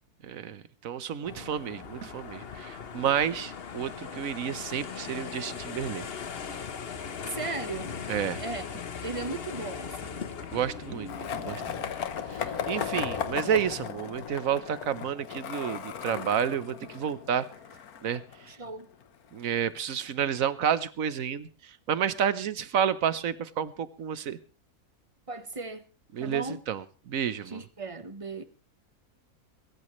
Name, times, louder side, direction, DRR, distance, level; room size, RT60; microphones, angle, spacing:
voice 1, 0.2-6.1 8.1-8.4 10.5-11.1 11.4-11.9 12.3-17.5 18.0-18.2 19.3-24.4 26.1-27.6, right 8 dB, 65° right, 1.3 m, -30 dB
sound 1, 1.2-13.9, left 6 dB, 45° left, 1.1 m, -39 dB
voice 2, 7.2-8.0 8.4-8.6 9.0-10.3 11.0-11.7 18.5-18.9 25.3-25.8 26.2-26.6 27.4-28.4, right 3 dB, 25° right, 1.1 m, -37 dB
Skateboard, 11.1-19.0, left 8 dB, 75° left, 1.6 m, -36 dB
24.0 x 14.0 x 3.2 m
omnidirectional pair, 1.6 m